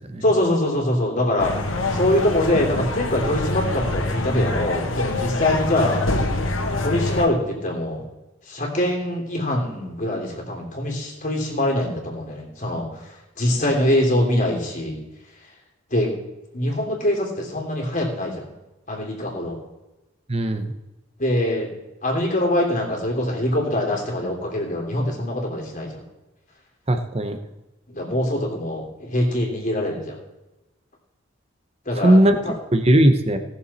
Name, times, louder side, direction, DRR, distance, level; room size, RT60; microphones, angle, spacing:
voice 1, 0.2-6.0 6.8-8.0 8.4-15.0 15.9-16.1 16.5-18.5 18.9-19.6 21.2-21.7 22.0-26.0 27.9-30.2 31.8-32.6, left 1 dB, 40° left, -1 dB, 3.1 m, -23 dB
sound 1, 1.4-7.3, left 2 dB, 90° left, 1.5 m, -25 dB
voice 2, 20.3-20.7 26.9-27.4 32.0-32.4 32.7-33.4, right 1 dB, 30° right, 7 dB, 0.9 m, -18 dB
18.5 x 7.0 x 4.2 m, 1.0 s
head